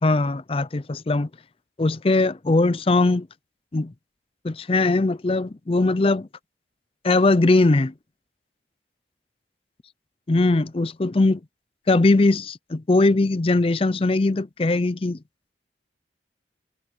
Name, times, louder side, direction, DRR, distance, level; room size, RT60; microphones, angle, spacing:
voice 1, 0.0-1.3 1.8-3.3 3.7-3.9 4.4-6.3 7.0-7.9 10.3-11.4 11.9-15.2, left 2 dB, 30° left, 0.5 m, -20 dB
head